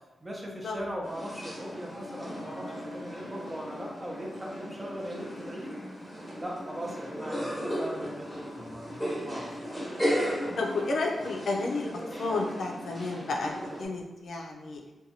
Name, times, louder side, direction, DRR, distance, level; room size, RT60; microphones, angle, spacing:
voice 1, 0.2-5.8 6.4-9.8, equal, 20° right, -1 dB, 0.6 m, -39 dB
sound 1, 1.0-13.9, equal, ahead, 1.0 m, -36 dB
voice 2, 10.6-11.9 12.2-14.8, left 3 dB, 75° left, 0 dB, 0.4 m, -31 dB
2.7 x 2.2 x 2.7 m, 1.1 s
cardioid pair, 65°, 0 cm